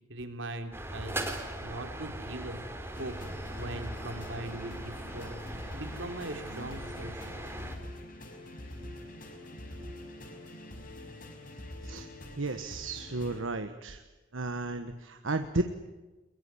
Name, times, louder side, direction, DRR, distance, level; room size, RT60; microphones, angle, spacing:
voice 1, 0.1-1.3 1.6-2.6 2.9-3.1 3.6-5.3 5.7-7.3, right 1 dB, 70° right, 6 dB, 3.4 m, -40 dB
sound 1, 0.7-7.8, right 1 dB, 10° right, 3.8 m, -40 dB
sound 2, 2.9-13.4, left 1 dB, 45° left, 5.6 m, -45 dB
voice 2, 12.4-14.0 14.3-15.6, right 2 dB, 90° right, 8 dB, 1.3 m, -33 dB
22.0 x 22.0 x 9.8 m, 1.2 s
head